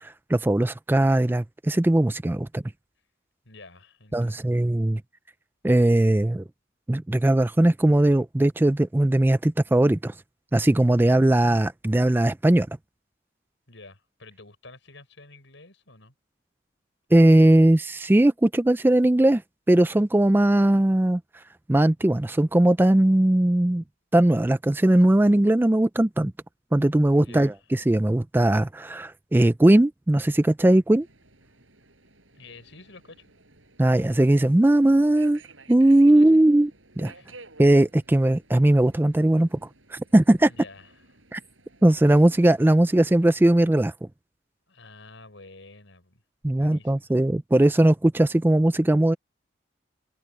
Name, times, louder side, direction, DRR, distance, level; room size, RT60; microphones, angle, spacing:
voice 1, 0.0-2.6 4.1-5.0 5.6-6.4 6.9-10.1 10.5-12.7 17.1-19.4 19.7-21.2 21.7-23.8 24.1-26.3 26.7-31.1 33.8-35.4 35.7-36.7 37.0-37.1 37.6-39.6 39.9-40.5 41.3-41.4 41.8-43.9 46.4-49.2, right 1 dB, 10° right, 0.3 m, -19 dB
voice 2, 3.4-4.6 13.7-16.1 27.1-27.7 32.3-33.3 36.1-36.4 37.1-37.4 40.4-41.0 44.7-46.2 46.6-47.1, left 3 dB, 75° left, 5.7 m, -49 dB
Subway metro underground, 31.0-43.6, right 3 dB, 85° right, 7.0 m, -53 dB
head